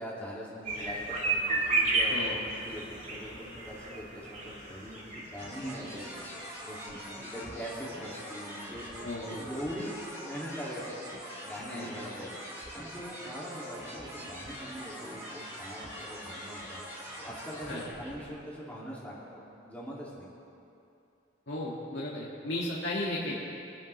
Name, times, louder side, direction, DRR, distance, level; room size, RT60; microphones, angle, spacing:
voice 1, 0.0-6.1 6.6-8.9 9.3-9.9 10.2-10.9 11.4-12.4 12.7-16.8 17.2-20.3, equal, 10° left, -6 dB, 2.2 m, -42 dB
sound 1, 0.6-5.8 6.1-6.2 6.4-6.5, right 2 dB, 40° right, 2.3 m, -32 dB
sound 2, 5.4-18.3, equal, 15° right, 3.6 m, -43 dB
voice 2, 9.0-9.4 11.7-11.9 17.7-17.8 21.5-23.3, left 1 dB, 70° left, -7 dB, 1.8 m, -34 dB
23.0 x 10.5 x 3.2 m, 2.7 s
head